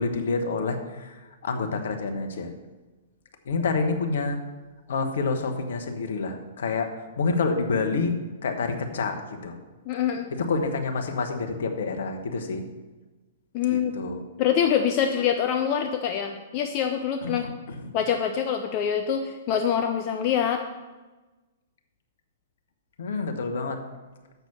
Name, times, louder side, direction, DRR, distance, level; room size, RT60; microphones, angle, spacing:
voice 1, 0.0-2.5 3.5-4.4 4.9-8.1 8.4-9.6 10.3-12.6 13.7-14.2 17.2-18.0 23.0-23.8, left 4 dB, 65° left, 5 dB, 1.2 m, -28 dB
voice 2, 9.9-10.3 13.5-13.9 14.4-17.4 17.9-20.6, left 8 dB, 40° left, 5 dB, 0.6 m, -25 dB
6.9 x 6.0 x 7.3 m, 1.2 s
figure-of-eight pair, 110°, 0 cm